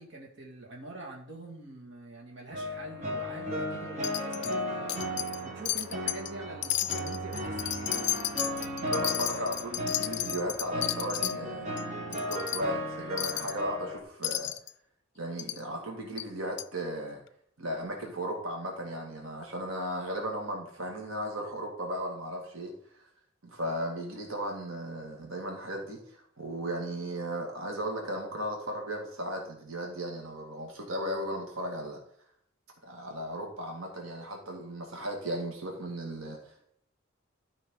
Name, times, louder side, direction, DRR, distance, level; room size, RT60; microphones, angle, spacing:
voice 1, 0.0-5.2 5.4-8.1, right 2 dB, 60° right, -1 dB, 2.1 m, -45 dB
sound 1, 2.5-14.0, equal, 35° right, 1.2 m, -35 dB
Wind chime, 4.0-4.6 4.9-5.4 5.7-6.3 6.6-11.3 11.8-11.9 12.1-12.6 13.2-13.6 14.2-14.7 15.4-15.6 16.2-16.3 16.6-16.7, left 14 dB, 60° left, 0.4 m, -33 dB
voice 2, 8.9-11.7 12.1-14.5 15.2-17.2 17.6-22.7 23.0-23.1 23.4-32.0 32.8-36.7, right 1 dB, 85° right, 1 dB, 1.9 m, -36 dB
12.5 x 5.5 x 3.8 m, 0.67 s
head